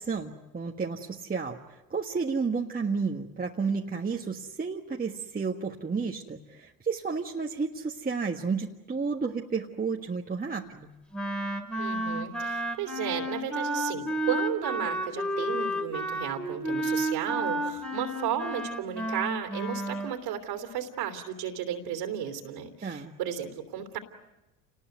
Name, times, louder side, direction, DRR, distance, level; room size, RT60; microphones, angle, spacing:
voice 1, 0.0-10.9 22.8-23.2, right 5 dB, 20° right, 0 dB, 1.6 m, -32 dB
Wind instrument woodwind instrument, 11.1-20.1, right 1 dB, ahead, 2.6 m, -31 dB
voice 2, 11.8-24.0, right 9 dB, 65° right, 4 dB, 3.1 m, -34 dB
28.5 x 20.0 x 9.3 m, 1.1 s
hypercardioid pair, 75°, 42 cm